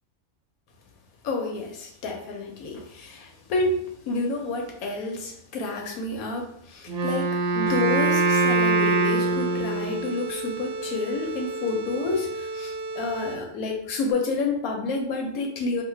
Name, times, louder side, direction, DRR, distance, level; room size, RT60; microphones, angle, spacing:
voice 1, 1.2-15.8, left 3 dB, 90° left, 1 dB, 1.2 m, -29 dB
Wind instrument woodwind instrument, 6.9-10.2, right 3 dB, 75° right, 1.0 m, -23 dB
sound 1, 7.7-13.6, right 2 dB, 30° right, 0.7 m, -34 dB
3.1 x 2.2 x 3.2 m, 0.68 s
omnidirectional pair, 1.5 m